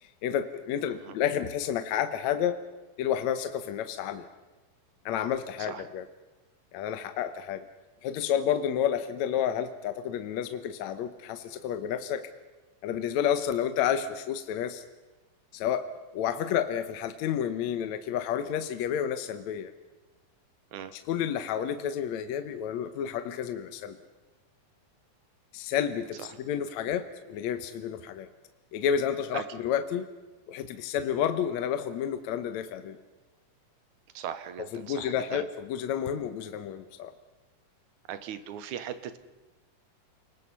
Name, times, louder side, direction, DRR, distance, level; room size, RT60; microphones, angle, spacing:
voice 1, 0.0-2.6 3.0-4.3 5.1-6.1 6.7-7.6 8.0-12.3 12.8-14.8 15.5-15.9 16.1-19.7 20.9-24.0 25.5-28.3 28.7-30.1 30.5-33.0 34.7-37.1, left 9 dB, 65° left, 9 dB, 2.0 m, -30 dB
voice 2, 34.1-35.5 38.1-39.2, right 9 dB, 70° right, 11 dB, 2.3 m, -38 dB
29.5 x 20.5 x 5.6 m, 1.2 s
omnidirectional pair, 4.0 m